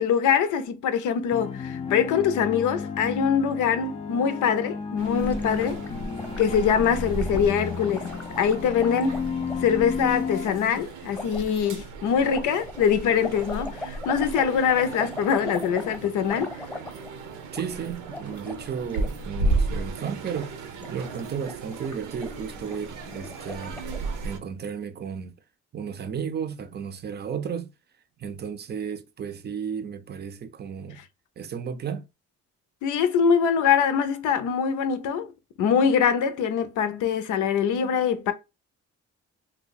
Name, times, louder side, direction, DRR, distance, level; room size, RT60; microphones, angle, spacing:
voice 1, 0.0-5.8 6.4-9.2 9.6-16.5 32.8-35.3 35.6-38.3, left 7 dB, 80° left, 0.6 m, -23 dB
sound 1, 1.3-10.5, left 5 dB, 20° left, 0.4 m, -33 dB
sound 2, 5.0-24.4, right 3 dB, 85° right, 0.7 m, -34 dB
Gurgling, 5.2-9.8 10.4-10.6 11.1-11.5 12.3-17.2 17.5-17.7 17.9-19.1 19.4-19.6 19.9-20.5 20.7-24.2, left 2 dB, 5° left, 0.9 m, -40 dB
voice 2, 17.5-20.6 20.9-25.4 25.7-27.7 28.2-31.0 31.4-32.1, right 7 dB, 35° right, 0.5 m, -34 dB
2.7 x 2.2 x 3.9 m
cardioid pair, 90°, 30 cm